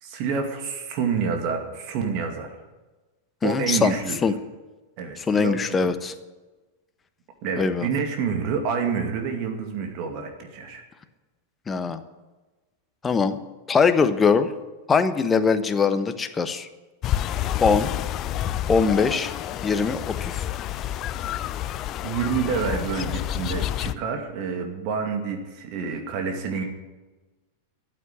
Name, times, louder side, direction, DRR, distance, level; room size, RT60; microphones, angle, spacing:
voice 1, 0.0-2.5 3.4-4.2 5.0-6.0 7.4-10.8 22.0-26.6, right 6 dB, 45° right, 4 dB, 2.3 m, -28 dB
voice 2, 3.4-3.9 4.2-4.3 5.2-6.1 7.6-7.9 11.7-12.0 13.0-13.4 13.7-14.5 14.9-16.7 17.6-17.9 18.7-19.3 19.6-20.4, left 5 dB, 15° left, 10 dB, 1.1 m, -21 dB
sound 1, 17.0-23.9, left 12 dB, 35° left, 0.6 m, -29 dB
14.0 x 8.6 x 9.9 m, 1.2 s
figure-of-eight pair, 90°, 0 cm